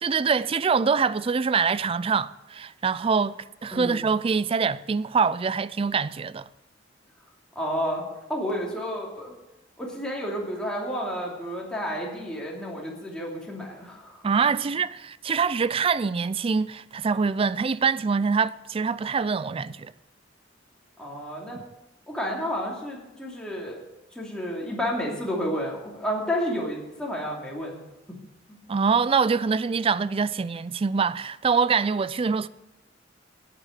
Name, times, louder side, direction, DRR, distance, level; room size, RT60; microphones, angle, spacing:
voice 1, 0.0-6.5 14.2-19.9 21.5-21.6 28.7-32.5, right 5 dB, 30° right, 0.4 m, -24 dB
voice 2, 3.7-4.0 7.5-8.0 8.3-9.3 9.8-14.2 21.0-21.6 22.1-23.8 24.1-27.8 28.1-28.2 28.5-28.6, equal, 5° left, 2.8 m, -31 dB
11.5 x 9.0 x 7.5 m
head